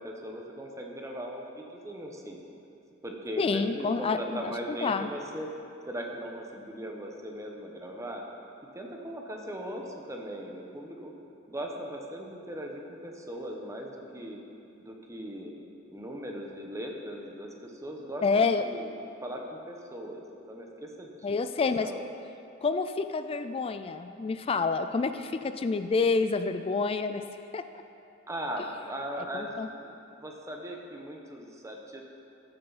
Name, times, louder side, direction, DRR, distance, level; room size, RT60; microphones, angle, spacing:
voice 1, 0.0-2.4 3.0-5.5 5.9-8.2 8.7-11.1 11.5-14.4 14.8-15.5 15.9-22.0 28.3-32.0, equal, 15° right, 1 dB, 0.9 m, -39 dB
voice 2, 3.4-5.1 18.2-18.6 21.2-21.9 22.6-27.2 27.5-27.6 29.3-29.7, left 4 dB, 30° left, 10 dB, 0.3 m, -28 dB
14.0 x 7.7 x 4.1 m, 2.7 s
head